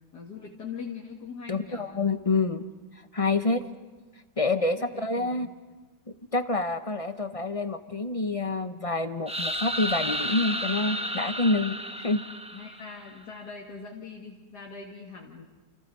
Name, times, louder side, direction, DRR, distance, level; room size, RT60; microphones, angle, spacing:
voice 1, 0.0-1.9 4.5-5.5 12.5-15.4, left 5 dB, 65° left, -2 dB, 2.6 m, -42 dB
voice 2, 1.5-2.6 3.1-3.6 4.4-5.5 6.3-12.2, left 3 dB, 30° left, 9 dB, 0.7 m, -27 dB
sound 1, 9.3-13.1, equal, 5° right, 0.7 m, -32 dB
29.5 x 29.0 x 5.4 m, 1.2 s
omnidirectional pair, 1.9 m